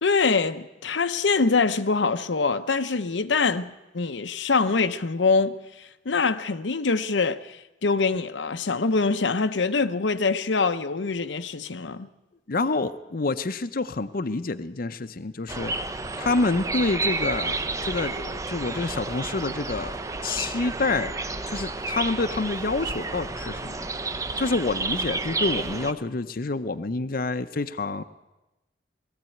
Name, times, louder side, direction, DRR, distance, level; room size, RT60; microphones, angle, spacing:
voice 1, 0.0-12.1, left 4 dB, 90° left, 0.8 m, -24 dB
voice 2, 12.5-15.7 16.2-20.0 20.2-21.1 21.5-23.9 24.1-28.0, left 3 dB, 50° left, 0.7 m, -28 dB
sound 1, 15.5-25.9, right 3 dB, 20° right, 0.7 m, -31 dB
19.5 x 14.5 x 9.1 m
head